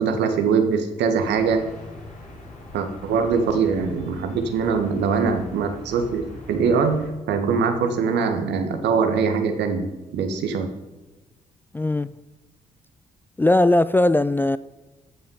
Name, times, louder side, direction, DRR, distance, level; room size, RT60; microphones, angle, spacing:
voice 1, 0.0-1.6 2.7-10.7, right 5 dB, 65° right, 1.3 m, -22 dB
sound 1, 1.2-7.1, left 2 dB, 40° left, 4.1 m, -42 dB
voice 2, 11.7-12.1 13.4-14.6, left 1 dB, 10° left, 0.4 m, -19 dB
14.0 x 5.7 x 5.5 m
figure-of-eight pair, 40°, 19 cm